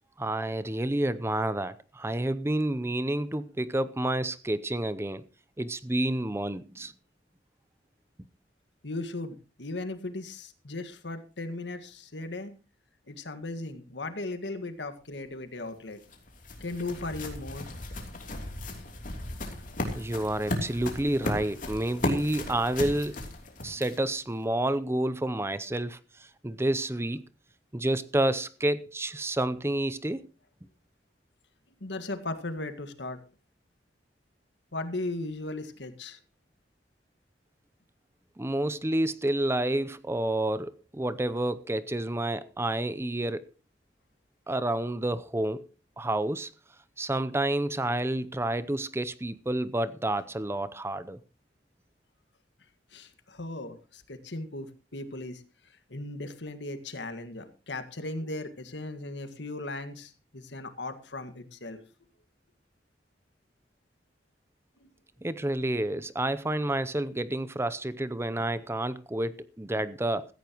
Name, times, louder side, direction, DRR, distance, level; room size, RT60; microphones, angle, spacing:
voice 1, 0.2-5.2 5.6-6.9 20.0-23.2 23.6-26.0 26.4-27.2 27.7-30.2 38.4-43.5 44.5-45.7 46.0-46.5 47.0-51.2 65.2-70.3, right 1 dB, 15° right, 0.7 m, -29 dB
voice 2, 8.8-12.5 13.1-16.0 16.6-17.7 31.8-33.2 34.7-36.2 52.9-55.4 55.9-61.8 64.8-64.9, left 2 dB, 90° left, 1.9 m, -37 dB
sound 1, 15.7-24.2, left 1 dB, 50° left, 3.2 m, -36 dB
16.5 x 14.5 x 3.0 m
head